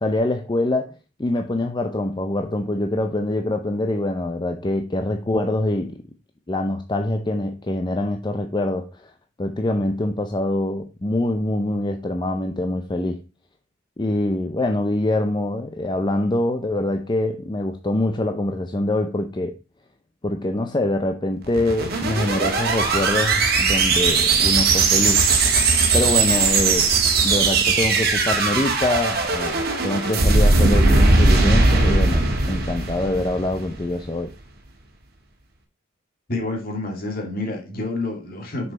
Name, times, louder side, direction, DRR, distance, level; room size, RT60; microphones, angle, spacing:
voice 1, 0.0-0.9 1.2-6.0 6.5-9.1 9.4-13.2 14.0-19.6 20.2-25.2 25.9-26.9 27.2-34.3, left 1 dB, 25° left, 0.5 m, -24 dB
sound 1, 21.4-33.8, right 3 dB, 55° right, 1.6 m, -19 dB
voice 2, 36.3-38.7, left 2 dB, 50° left, 2.3 m, -28 dB
6.3 x 5.5 x 4.2 m
head